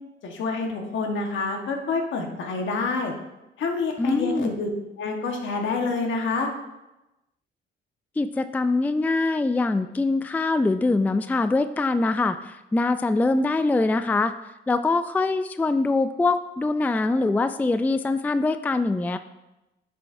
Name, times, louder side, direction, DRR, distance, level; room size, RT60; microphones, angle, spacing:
voice 1, 0.2-3.1 3.6-4.7 5.0-6.5, left 4 dB, 75° left, 2 dB, 1.4 m, -27 dB
voice 2, 4.0-4.5 8.2-14.3 14.7-19.2, left 3 dB, 10° left, 11 dB, 0.3 m, -23 dB
11.0 x 6.7 x 2.7 m, 0.97 s
cardioid pair, 90°, 20 cm